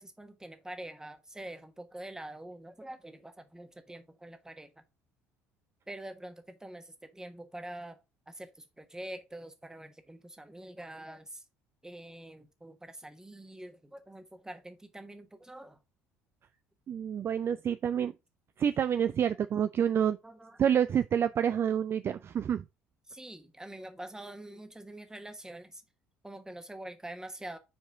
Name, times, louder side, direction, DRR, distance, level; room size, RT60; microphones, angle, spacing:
voice 1, 0.0-4.7 5.9-11.4 11.8-15.8 20.2-20.6 23.1-25.8 26.2-27.6, right 1 dB, 10° right, 1.2 m, -45 dB
voice 2, 16.9-18.1 18.6-20.2 20.6-22.6, right 8 dB, 35° right, 0.3 m, -28 dB
5.3 x 4.7 x 4.7 m
figure-of-eight pair, 55°, 7 cm